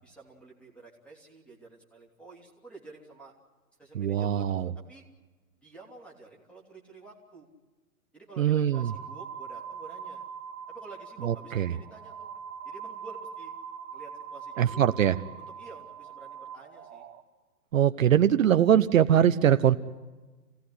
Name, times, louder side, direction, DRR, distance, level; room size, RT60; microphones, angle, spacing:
voice 1, 0.0-3.3 3.8-5.0 5.6-7.5 8.1-10.2 10.7-12.3 12.6-13.5 13.9-14.8 15.4-17.0, right 3 dB, ahead, -1 dB, 3.0 m, -50 dB
voice 2, 3.9-4.7 8.4-8.9 11.2-11.7 14.6-15.2 17.7-19.8, right 10 dB, 60° right, 10 dB, 0.9 m, -22 dB
sound 1, 8.7-17.2, right 7 dB, 20° right, 1.4 m, -42 dB
27.0 x 17.5 x 9.9 m, 1.3 s
hypercardioid pair, 155°, 46 cm